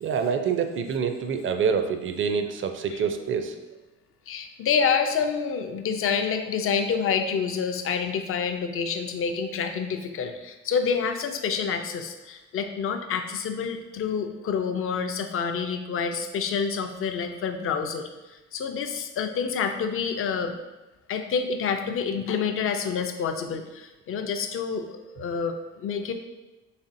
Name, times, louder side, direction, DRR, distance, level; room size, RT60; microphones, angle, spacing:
voice 1, 0.0-3.5, right 6 dB, 40° right, 7 dB, 0.4 m, -26 dB
voice 2, 4.3-18.1 18.5-20.6 21.1-26.1, left 6 dB, 45° left, 6 dB, 0.4 m, -28 dB
4.1 x 3.3 x 2.6 m, 1.1 s
cardioid pair, 90°, 30 cm